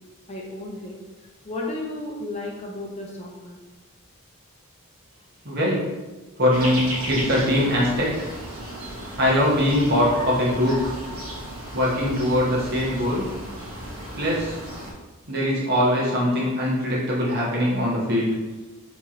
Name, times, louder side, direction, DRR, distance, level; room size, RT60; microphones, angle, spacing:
voice 1, 0.3-1.0 1.4-3.6, left 2 dB, 30° left, -2 dB, 0.5 m, -33 dB
voice 2, 5.4-5.8 6.4-8.3 9.2-10.9 11.7-13.3 14.2-14.6 15.3-18.3, left 1 dB, 50° right, -5 dB, 1.0 m, -22 dB
sound 1, 6.5-14.9, right 1 dB, 70° right, 1.0 m, -35 dB
3.0 x 2.8 x 3.6 m, 1.2 s
head